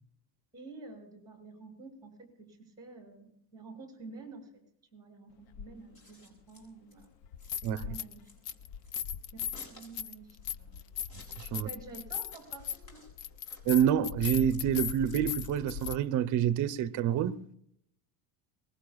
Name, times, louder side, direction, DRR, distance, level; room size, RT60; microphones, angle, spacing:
voice 1, 0.5-4.6 4.9-7.1 7.6-8.6 9.3-10.9 11.5-13.1, right 3 dB, 10° right, 6.4 m, -50 dB
sound 1, 5.5-5.7 7.2-8.2 8.4-16.0, left 8 dB, 85° left, 1.0 m, -38 dB
Scissors, 5.8-16.4, left 1 dB, 40° left, 7.1 m, -57 dB
voice 2, 11.1-11.7 13.6-17.5, right 9 dB, 40° right, 0.8 m, -28 dB
24.0 x 21.5 x 2.4 m
cardioid pair, 170°, 44 cm